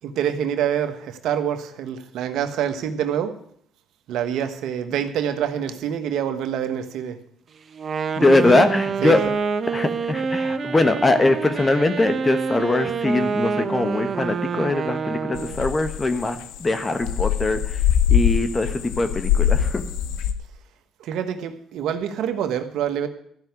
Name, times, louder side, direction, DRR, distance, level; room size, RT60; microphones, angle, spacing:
voice 1, 0.0-3.4 4.1-7.2 8.1-8.7 9.0-9.2 21.0-23.1, right 9 dB, 75° right, 1.3 m, -26 dB
Wind instrument woodwind instrument, 7.7-15.7, right 5 dB, 45° right, 0.9 m, -27 dB
voice 2, 8.2-9.2 9.7-17.8 18.1-19.8, left 2 dB, 25° left, 1.3 m, -21 dB
sound 1, 15.4-20.3, left 9 dB, 85° left, 0.9 m, -22 dB
14.0 x 5.8 x 9.4 m
cardioid pair, 85°, 0 cm